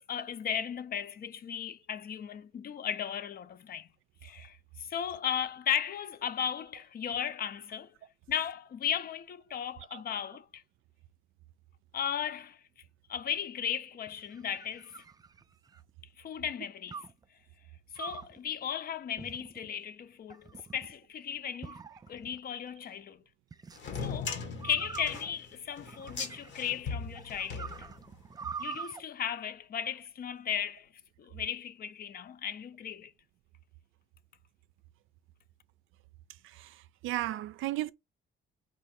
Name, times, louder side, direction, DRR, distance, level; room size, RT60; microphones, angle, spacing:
voice 1, 0.0-3.9 4.2-7.9 8.3-10.6 11.9-12.6 13.1-15.0 16.2-17.0 17.9-23.2 24.0-27.7 28.6-30.9 31.2-33.1, left 8 dB, 50° left, 0.5 m, -36 dB
sound 1, 14.1-15.9 16.9-17.2 17.9-18.4 19.2-19.7 20.3-20.9 21.6-22.4 23.5-23.8 24.6-26.7 27.1-29.0, right 5 dB, 20° right, 0.3 m, -44 dB
sound 2, 23.8-28.3, left 5 dB, 70° left, 1.2 m, -39 dB
voice 2, 36.4-37.9, right 16 dB, 85° right, 0.4 m, -35 dB
4.4 x 2.6 x 4.2 m
cardioid pair, 90°, 20 cm